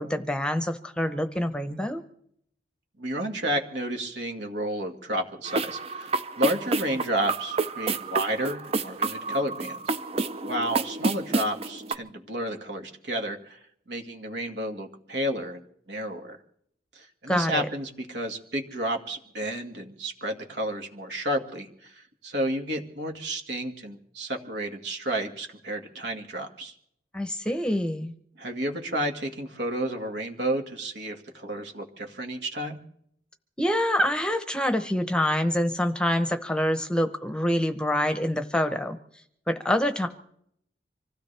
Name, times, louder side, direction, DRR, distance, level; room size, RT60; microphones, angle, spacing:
voice 1, 0.0-2.0 17.3-17.7 27.1-28.1 33.6-39.0 39.5-40.1, left 1 dB, 5° left, 8 dB, 0.9 m, -26 dB
voice 2, 3.0-9.8 10.4-13.6 13.9-15.6 15.9-16.4 17.0-26.7 28.4-32.8, right 1 dB, 70° right, 3 dB, 2.0 m, -31 dB
sound 1, 5.5-11.9, right 3 dB, 35° right, 0.6 m, -29 dB
25.5 x 16.0 x 3.4 m, 0.69 s
head